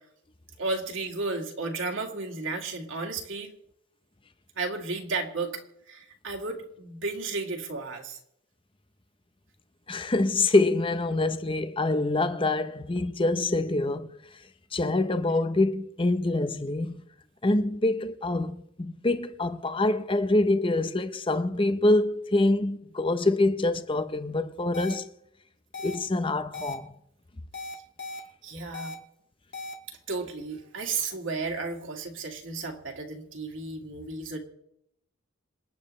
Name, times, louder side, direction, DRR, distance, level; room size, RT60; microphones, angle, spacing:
voice 1, 0.6-3.5 4.6-8.2 28.4-29.0 29.9-34.4, right 3 dB, 60° right, 2.1 m, -33 dB
voice 2, 9.9-14.1 14.7-17.0 17.4-25.1 25.8-26.9, left 2 dB, 25° left, 0.7 m, -25 dB
sound 1, 24.7-24.9 25.7-25.9 26.5-26.7 27.5-28.2 28.7-28.9 29.5-29.7, left 2 dB, 55° left, 1.8 m, -37 dB
27.0 x 9.6 x 3.2 m
head